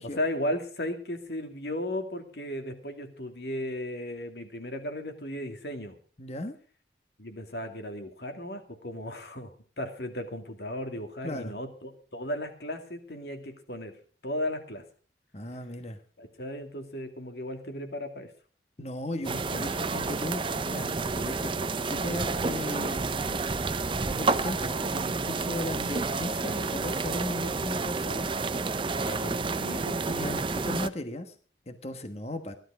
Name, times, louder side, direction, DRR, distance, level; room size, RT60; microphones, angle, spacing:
voice 1, 0.0-6.0 7.2-13.9 14.2-14.8 16.2-18.3 29.0-30.1, left 1 dB, 65° left, 5 dB, 2.4 m, -35 dB
voice 2, 6.2-6.6 11.2-11.5 15.3-16.0 18.8-23.4 24.0-28.3 29.3-29.4 30.1-31.3 31.7-32.5, left 1 dB, 35° left, 8 dB, 1.3 m, -37 dB
sound 1, 19.2-30.9, right 3 dB, 30° right, 0.5 m, -30 dB
16.0 x 12.0 x 4.9 m, 0.42 s
head